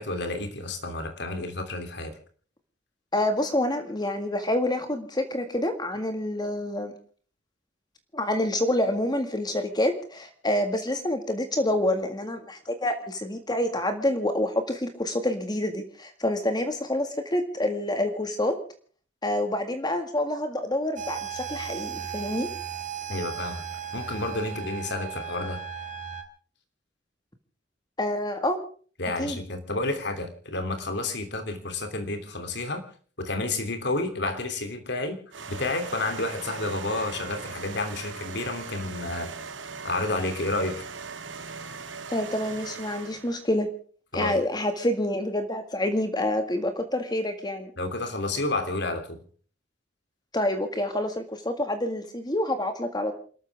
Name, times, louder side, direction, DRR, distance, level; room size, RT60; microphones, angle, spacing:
voice 1, 0.0-2.1 23.1-23.6 23.9-25.6 29.0-32.8 33.2-35.2 35.5-39.3 39.8-40.8 44.1-44.4 47.8-49.2, left 2 dB, 65° left, 7 dB, 3.1 m, -30 dB
voice 2, 3.1-6.9 8.1-18.6 19.2-22.5 28.0-28.6 29.2-29.4 42.1-43.7 44.1-47.7 50.3-53.1, left 1 dB, 20° left, 7 dB, 1.9 m, -27 dB
sound 1, 21.0-26.2, right 8 dB, 45° right, 2.6 m, -36 dB
sound 2, 35.3-43.4, right 5 dB, 85° right, 2.1 m, -39 dB
28.5 x 13.5 x 3.5 m, 0.43 s
head